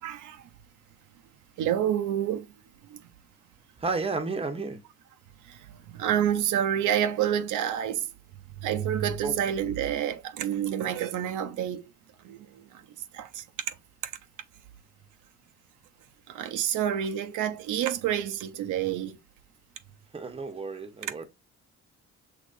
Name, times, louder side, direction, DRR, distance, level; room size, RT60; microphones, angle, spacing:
voice 1, 0.0-0.5 1.6-2.5 2.8-3.0 5.4-8.1 8.6-11.8 12.2-12.9 13.1-13.8 14.0-14.1 16.3-19.2, right 10 dB, 80° right, 0.6 m, -29 dB
voice 2, 3.8-4.8 9.2-9.3 20.1-21.2, right 4 dB, 20° right, 0.9 m, -32 dB
6.4 x 3.1 x 2.5 m
cardioid pair, 90°, 30 cm